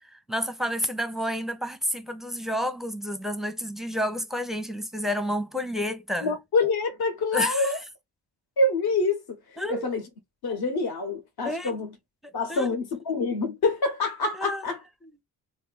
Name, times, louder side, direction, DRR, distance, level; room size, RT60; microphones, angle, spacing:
voice 1, 0.1-6.3 7.3-7.8 9.6-9.9 11.4-11.7 12.5-12.7 14.3-14.7 15.0-15.1, equal, ahead, 0.6 m, -30 dB
voice 2, 6.2-7.8 8.6-9.4 9.7-10.0 10.4-11.9 12.3-14.8, left 3 dB, 50° left, 1.2 m, -26 dB
2.9 x 2.0 x 3.9 m
hypercardioid pair, 45°, 48 cm